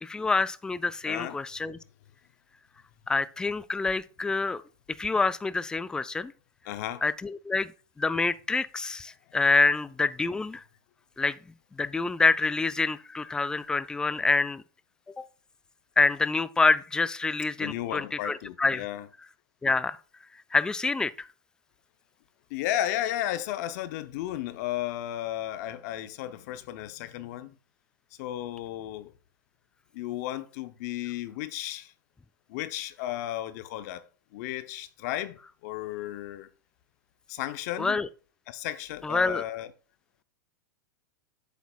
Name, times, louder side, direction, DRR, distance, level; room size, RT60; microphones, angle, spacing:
voice 1, 0.0-1.8 3.1-4.6 5.0-6.3 7.0-7.7 8.0-10.6 11.2-11.4 11.8-14.6 15.2-15.3 16.0-18.8 19.6-20.0 20.5-21.3 37.8-38.1 39.0-39.4, left 3 dB, 5° left, 0.3 m, -26 dB
voice 2, 1.0-1.4 6.7-7.0 17.6-19.1 22.5-27.5 28.2-29.1 29.9-31.9 32.5-34.0 34.3-35.4 35.6-36.5 37.3-38.0 38.5-39.7, left 13 dB, 55° left, 0.7 m, -34 dB
8.2 x 8.1 x 2.4 m
supercardioid pair, 135°, 11 cm